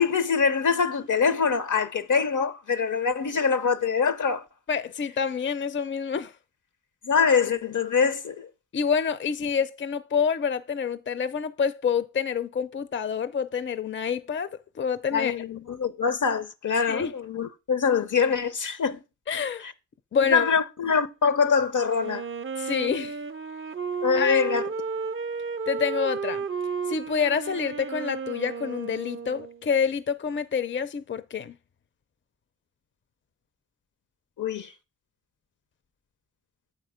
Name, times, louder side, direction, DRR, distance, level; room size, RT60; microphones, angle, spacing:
voice 1, 0.0-4.4 7.0-8.5 15.1-19.0 19.6-19.7 20.3-22.3 24.0-24.7 34.4-34.7, left 6 dB, 70° left, 0.7 m, -24 dB
voice 2, 4.7-6.3 8.7-15.3 16.9-17.1 19.3-19.7 20.1-20.5 22.6-23.2 24.2-24.5 25.7-26.4 26.9-31.6, left 6 dB, 40° left, 0.5 m, -27 dB
Wind instrument woodwind instrument, 22.0-29.7, right 5 dB, 40° right, 0.5 m, -33 dB
7.7 x 4.4 x 4.9 m
cardioid pair, 45°, 32 cm